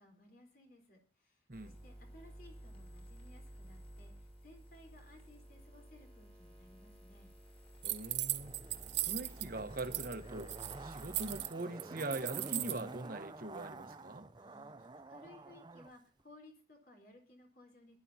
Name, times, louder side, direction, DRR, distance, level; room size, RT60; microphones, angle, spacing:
voice 1, 0.0-7.3 14.3-18.0, left 1 dB, 50° left, 4.0 m, -60 dB
sound 1, 1.5-11.4, equal, 30° left, 5.6 m, -54 dB
voice 2, 7.8-8.6 9.1-14.3, right 2 dB, 50° right, 1.2 m, -42 dB
sound 2, 7.8-9.5 9.8-10.1 10.4-12.8, right 16 dB, 65° right, 0.7 m, -38 dB
Zipper (clothing), 8.3-15.9 16.2-16.3, right 3 dB, 25° right, 0.5 m, -49 dB
21.0 x 11.0 x 2.8 m
head